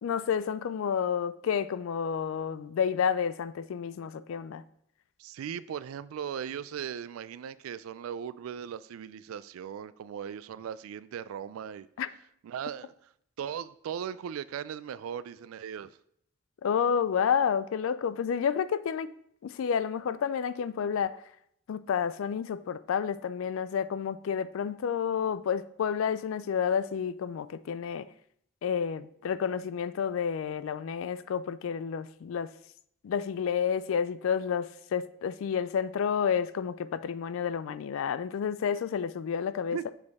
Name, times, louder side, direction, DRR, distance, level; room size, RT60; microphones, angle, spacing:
voice 1, 0.0-4.6 12.0-12.1 16.6-19.1 19.4-21.2 21.7-28.1 28.6-32.5 33.0-39.9, left 7 dB, 75° left, 0.3 m, -30 dB
voice 2, 5.2-11.9 12.4-12.9 13.4-16.0 39.7-39.8, right 8 dB, 90° right, 0.3 m, -38 dB
6.3 x 5.1 x 3.5 m
head